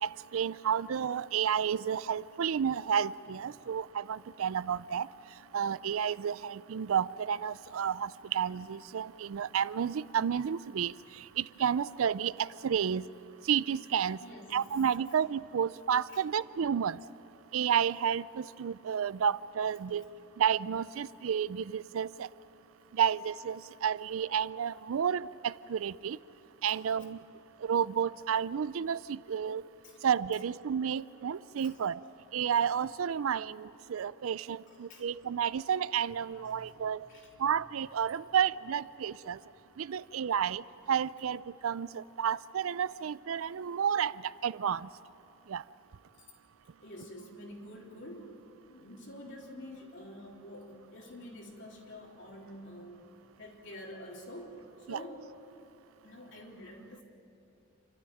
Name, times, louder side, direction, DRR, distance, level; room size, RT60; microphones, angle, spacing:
voice 1, 0.0-5.1 5.5-10.9 11.4-13.0 13.5-14.2 14.5-17.0 17.5-20.1 20.4-22.3 22.9-26.2 26.6-27.2 27.6-29.6 30.0-32.0 32.3-37.1 37.4-39.4 39.8-44.2 44.4-44.9 45.5-45.6 54.9-55.0, right 8 dB, 75° right, 0.4 m, -31 dB
voice 2, 14.2-14.6 16.1-16.2 26.7-26.8 29.8-30.0 31.6-31.8 34.7-35.1 36.4-36.7 37.1-37.3 46.2-46.3 46.8-48.3 48.7-53.0 53.4-55.2 56.0-57.0, left 1 dB, 55° left, 3.5 m, -47 dB
28.0 x 13.0 x 9.2 m
head